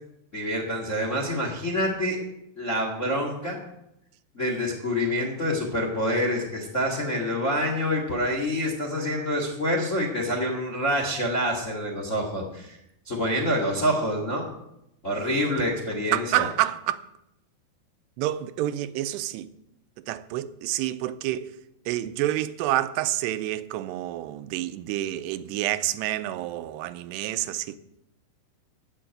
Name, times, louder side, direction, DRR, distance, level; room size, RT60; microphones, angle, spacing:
voice 1, 0.3-2.2 2.6-3.6 4.3-12.8 13.0-14.5 15.0-16.5, equal, 30° left, 1.3 m, -27 dB
voice 2, 16.1-17.0 18.2-19.5 20.1-21.5 21.9-27.8, right 14 dB, 85° right, 2.8 m, -28 dB
14.5 x 6.5 x 9.1 m
omnidirectional pair, 4.8 m